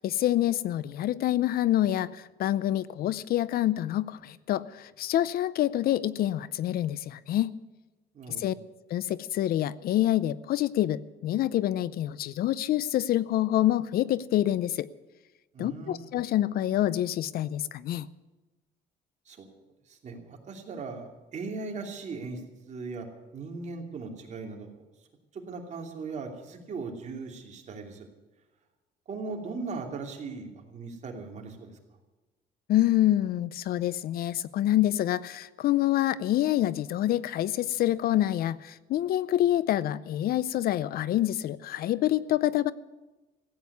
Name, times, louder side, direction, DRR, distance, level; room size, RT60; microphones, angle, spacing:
voice 1, 0.0-7.5 8.3-8.5 8.9-14.9 15.6-18.1 32.7-42.7, left 13 dB, 60° left, 19 dB, 0.6 m, -27 dB
voice 2, 8.1-8.5 15.5-16.1 19.3-19.5 19.9-23.1 23.3-24.8 25.3-28.1 29.1-31.8, right 4 dB, 45° right, 2 dB, 2.9 m, -38 dB
15.0 x 9.1 x 9.5 m, 1.2 s
cardioid pair, 110°, 17 cm